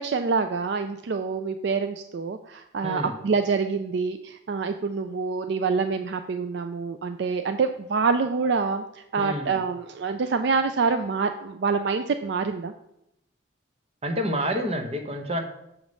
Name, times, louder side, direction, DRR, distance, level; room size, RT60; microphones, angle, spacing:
voice 1, 0.0-12.7, right 5 dB, 55° right, 8 dB, 0.4 m, -26 dB
voice 2, 9.2-9.6 14.0-15.4, equal, 30° right, 5 dB, 0.9 m, -28 dB
7.1 x 5.0 x 5.3 m, 0.81 s
head